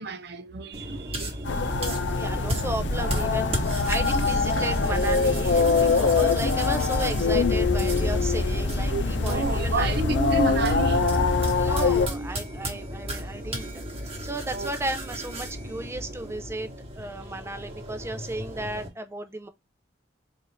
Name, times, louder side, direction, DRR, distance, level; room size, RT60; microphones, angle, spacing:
voice 1, 0.0-1.7 8.9-11.2 12.1-12.3 14.5-14.7, right 4 dB, 65° right, 0.6 m, -31 dB
sound 1, 0.7-18.9, equal, 35° right, 1.2 m, -35 dB
sound 2, 1.4-12.1, left 4 dB, 80° left, 0.6 m, -23 dB
voice 2, 2.1-10.2 11.5-13.7 14.0-16.7 17.0-19.5, right 2 dB, 15° right, 0.5 m, -34 dB
4.1 x 2.6 x 3.1 m
head